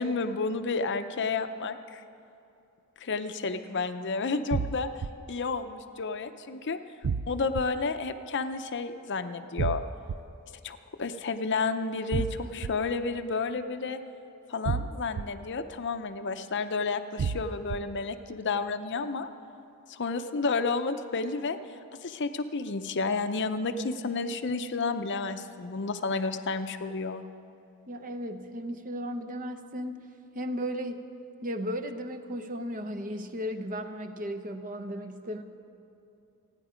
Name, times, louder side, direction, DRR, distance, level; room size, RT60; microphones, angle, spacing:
voice 1, 0.0-2.0 3.0-6.8 7.3-9.8 10.6-12.3 12.5-14.0 14.5-19.3 19.9-21.6 22.0-27.2, left 4 dB, 55° left, 9 dB, 0.7 m, -31 dB
sound 1, 4.5-5.1 7.0-7.6 9.6-10.2 12.1-12.7 14.7-15.2 17.2-17.8, right 5 dB, 85° right, 0.5 m, -29 dB
voice 2, 12.1-12.5 18.4-18.5 27.9-30.1 30.3-31.0 31.4-35.4, equal, 40° right, 7 dB, 0.8 m, -35 dB
28.5 x 9.9 x 5.1 m, 2.7 s
head